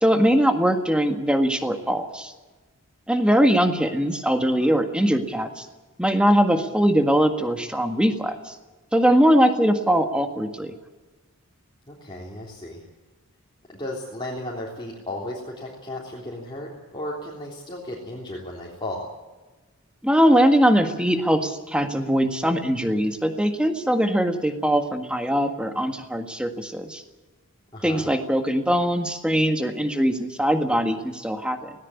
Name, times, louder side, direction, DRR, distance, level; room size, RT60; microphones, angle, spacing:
voice 1, 0.0-2.3 3.1-5.6 6.0-8.5 8.9-10.7 20.0-27.0 27.8-31.7, equal, 5° right, 5 dB, 1.7 m, -21 dB
voice 2, 11.9-12.8 13.7-19.1 27.7-28.1, left 1 dB, 20° left, -4 dB, 3.4 m, -34 dB
19.0 x 18.0 x 8.5 m, 1.2 s
head